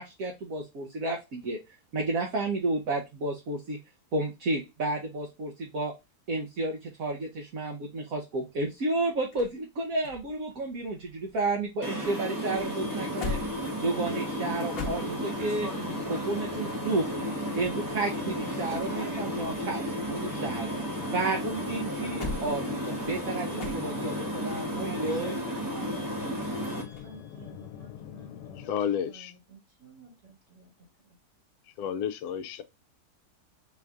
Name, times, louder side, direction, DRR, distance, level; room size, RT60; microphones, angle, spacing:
voice 1, 0.0-1.6 1.9-3.8 4.1-5.9 6.3-13.4 13.8-15.7 16.0-17.1 17.6-20.8 21.1-25.4, right 2 dB, 60° right, 1.2 m, -31 dB
sound 1, 8.5-11.7 12.0-15.6 17.3-19.1 19.4-21.2 21.6-24.3 26.9-27.2, left 3 dB, 45° left, 1.0 m, -42 dB
sound 2, 11.8-26.8, equal, 15° right, 0.8 m, -33 dB
sound 3, 12.8-28.7, left 9 dB, 90° left, 1.2 m, -44 dB
voice 2, 26.6-31.2, right 2 dB, 80° right, 2.7 m, -53 dB
voice 3, 28.7-29.3 31.8-32.6, left 8 dB, 70° left, 1.0 m, -31 dB
4.5 x 2.5 x 3.3 m
omnidirectional pair, 1.8 m